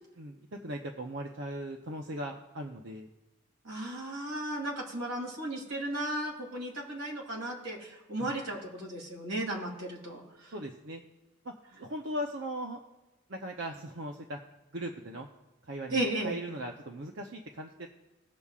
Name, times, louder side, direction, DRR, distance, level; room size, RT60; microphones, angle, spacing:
voice 1, 0.6-3.1 8.2-8.3 10.5-11.0 11.4-11.5 11.8-12.8 13.3-14.4 14.7-15.3 15.7-17.9, right 1 dB, 60° right, 2 dB, 0.8 m, -38 dB
voice 2, 3.6-10.5 15.9-16.4, right 1 dB, 85° right, -2 dB, 2.8 m, -35 dB
20.0 x 6.9 x 2.4 m, 1.1 s
head